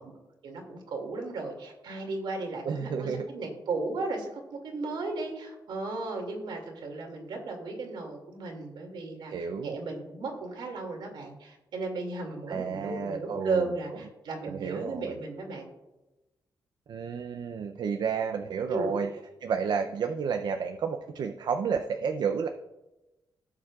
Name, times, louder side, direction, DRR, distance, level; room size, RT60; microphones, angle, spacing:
voice 1, 0.4-15.7 18.7-19.0, right 3 dB, 80° right, 2 dB, 2.4 m, -35 dB
voice 2, 2.7-3.3 9.3-9.7 12.5-13.7 14.4-15.1 16.9-19.1 19.4-22.5, right 6 dB, 65° right, 6 dB, 0.5 m, -31 dB
17.0 x 7.4 x 2.4 m, 1.0 s
wide cardioid pair, 150°, 8 cm